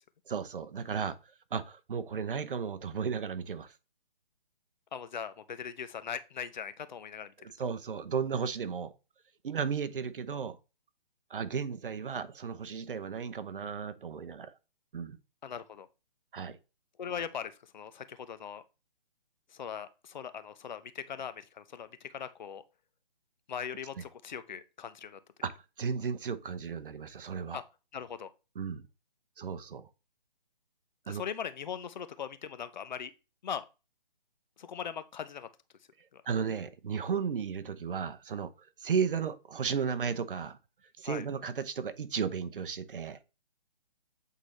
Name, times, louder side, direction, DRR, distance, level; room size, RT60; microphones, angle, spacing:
voice 1, 0.3-1.2 1.5-3.7 7.6-8.9 9.4-10.6 11.3-14.5 14.9-15.2 16.3-16.6 25.4-27.6 28.6-28.9 29.4-29.9 31.1-31.2 36.3-38.5 38.8-40.6 41.0-43.2, right 6 dB, 65° right, 0.9 m, -34 dB
voice 2, 4.9-7.3 15.4-15.9 17.0-18.6 19.5-22.6 23.5-25.2 27.5-27.6 27.9-28.3 31.1-33.1 33.4-33.7 34.6-35.5 36.1-36.2 41.0-41.3, left 7 dB, 50° left, 0.8 m, -40 dB
8.2 x 4.0 x 3.2 m
hypercardioid pair, 155°, 29 cm